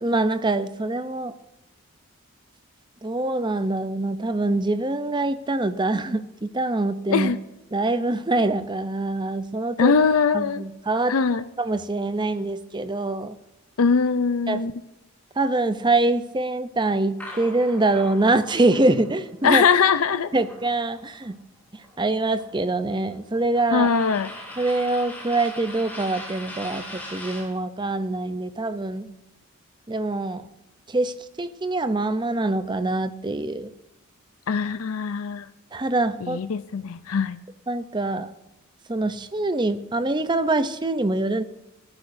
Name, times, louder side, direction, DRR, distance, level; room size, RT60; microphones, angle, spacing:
voice 1, 0.0-1.3 3.0-7.3 7.7-9.9 10.3-11.2 11.6-13.3 14.5-14.6 15.4-19.6 20.3-21.3 22.0-23.9 24.6-29.1 29.9-30.5 30.9-33.7 35.7-36.4 37.7-38.3 38.9-41.4, right 2 dB, 20° right, 11 dB, 0.6 m, -24 dB
voice 2, 9.8-10.6 11.1-11.4 13.8-14.7 19.4-20.3 23.7-24.3 34.5-35.5 36.2-37.4, left 5 dB, 70° left, 12 dB, 0.5 m, -21 dB
sound 1, 17.2-21.3 21.6-27.5, left 1 dB, 10° left, 3.3 m, -41 dB
19.5 x 10.5 x 2.6 m, 0.94 s
head